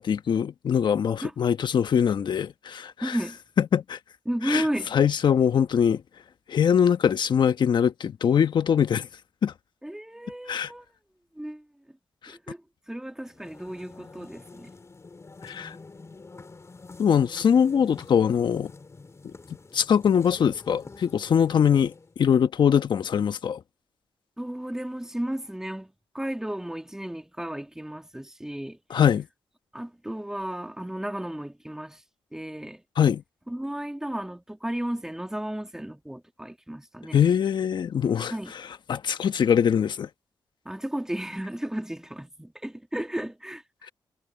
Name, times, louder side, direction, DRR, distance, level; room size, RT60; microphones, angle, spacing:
voice 1, 0.0-3.2 3.6-4.0 4.4-6.0 6.5-9.1 9.4-9.5 10.5-10.7 12.2-12.3 15.4-15.8 17.0-18.7 19.7-21.9 22.2-23.6 28.9-29.3 33.0-33.2 37.1-38.3 38.9-40.1, left 8 dB, 65° left, 1.3 m, -22 dB
voice 2, 3.0-3.4 4.3-4.9 9.8-10.9 11.4-11.6 12.3-12.6 12.9-14.7 24.4-28.8 29.7-32.0 32.3-32.8 33.5-37.2 38.3-38.5 40.6-43.6, right 1 dB, 5° right, 2.7 m, -33 dB
sound 1, 13.3-22.2, left 3 dB, 35° left, 5.1 m, -47 dB
cardioid pair, 70°, 9 cm